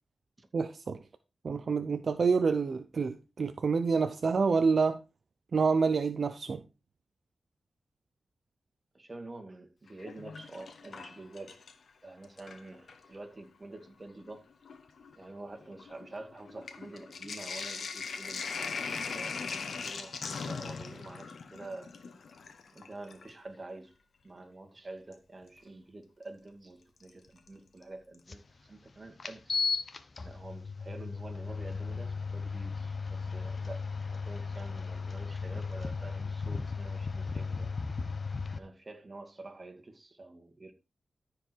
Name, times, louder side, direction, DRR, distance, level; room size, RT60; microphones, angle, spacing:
voice 1, 0.5-1.0 1.4-5.0 5.5-6.6, right 5 dB, 65° right, 0.7 m, -27 dB
voice 2, 8.9-11.6 12.0-14.4 15.1-19.4 19.8-22.0 22.7-23.9 24.2-29.6 30.2-37.7 38.6-40.7, right 2 dB, 35° right, 2.3 m, -47 dB
Sink (filling or washing), 9.9-11.9 12.2-13.1 13.9-14.0 14.2-23.4 25.1-25.2 27.0-27.5 27.8-27.9 28.1-28.2, left 5 dB, 75° left, 1.3 m, -40 dB
sound 1, 28.3-28.4 29.2-38.6, left 4 dB, 55° left, 1.1 m, -35 dB
13.5 x 4.9 x 4.7 m
cardioid pair, 60°, 0 cm